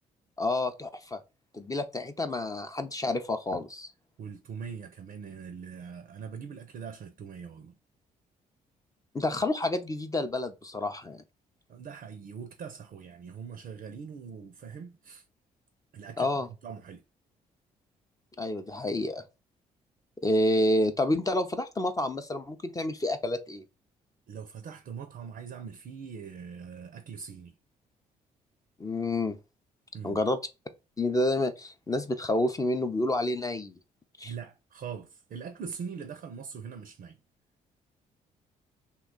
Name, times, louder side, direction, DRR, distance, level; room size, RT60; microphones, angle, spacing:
voice 1, 0.4-1.2 1.5-3.9 9.1-11.2 16.2-16.5 18.4-19.2 20.2-23.6 28.8-29.4 30.0-30.4 31.0-33.8 34.2-34.3, left 1 dB, 20° left, 0.5 m, -29 dB
voice 2, 4.2-7.8 11.7-15.2 15.9-17.0 24.3-27.6 29.9-30.2 34.2-37.2, right 6 dB, 50° right, 0.5 m, -42 dB
2.8 x 2.2 x 3.8 m
hypercardioid pair, 45°, 19 cm